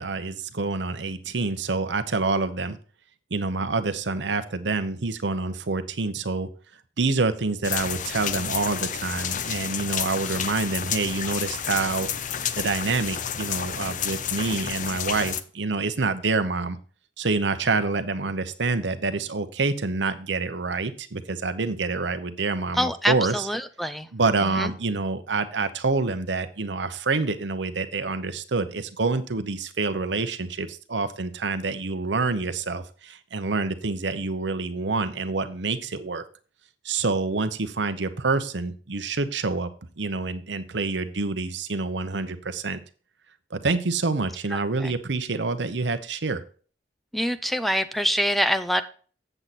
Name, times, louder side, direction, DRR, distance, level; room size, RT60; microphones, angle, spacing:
voice 1, 0.0-2.8 3.3-6.5 7.0-12.1 12.6-16.8 17.2-23.5 24.1-36.2 36.8-39.7 40.0-42.8 43.5-46.4, right 3 dB, 75° right, 10 dB, 0.9 m, -27 dB
sound 1, 7.6-15.4, left 8 dB, 45° left, 0.6 m, -30 dB
voice 2, 22.8-24.1 24.4-24.7 44.5-44.9 47.1-48.8, equal, ahead, 11 dB, 0.5 m, -25 dB
8.0 x 7.6 x 4.1 m, 0.41 s
head